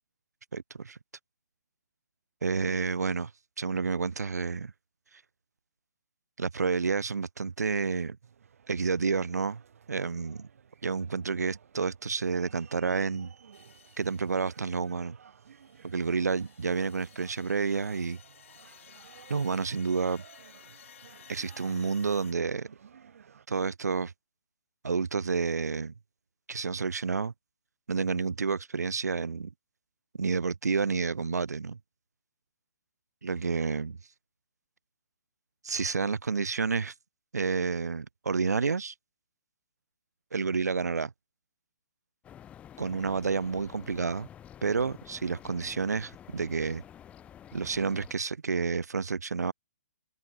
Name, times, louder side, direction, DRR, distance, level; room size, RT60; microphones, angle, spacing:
voice 1, 0.5-1.0 2.4-3.3 3.6-4.7 6.4-8.2 8.7-9.6 9.9-10.5 10.8-13.3 14.0-15.2 15.8-18.2 19.3-20.2 21.3-22.7 23.5-24.1 24.8-25.9 26.5-27.3 27.9-29.5 30.2-31.8 33.2-34.0 35.6-36.9 37.3-38.9 40.3-41.1 42.8-44.3 44.6-46.8 47.5-49.5, right 5 dB, 85° right, 0.5 m, -30 dB
sound 1, 8.2-23.5, right 7 dB, 60° right, 3.9 m, -56 dB
sound 2, 13.5-15.0 15.5-22.3, left 10 dB, 50° left, 4.4 m, -56 dB
sound 3, 42.2-48.1, left 10 dB, 15° left, 1.8 m, -50 dB
open air
hypercardioid pair, 140°, 9 cm